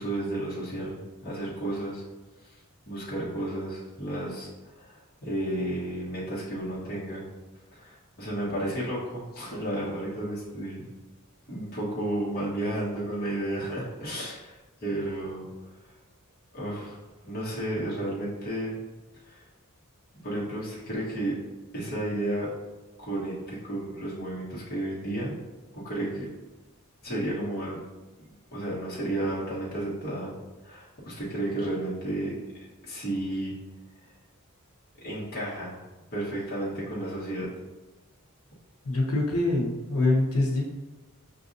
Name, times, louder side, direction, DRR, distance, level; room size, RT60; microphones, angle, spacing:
voice 1, 0.0-2.0 2.4-2.6 2.9-7.2 7.7-10.9 11.5-15.5 16.5-18.8 19.2-19.4 20.2-21.4 21.7-22.5 23.0-25.4 25.7-26.3 27.0-27.8 28.5-30.3 30.6-32.3 32.8-33.5 35.0-35.7 36.1-37.5, right 1 dB, 45° left, -7 dB, 1.2 m, -32 dB
voice 2, 38.8-40.6, left 2 dB, 70° left, -2 dB, 1.0 m, -24 dB
6.0 x 2.6 x 2.6 m, 1.2 s
head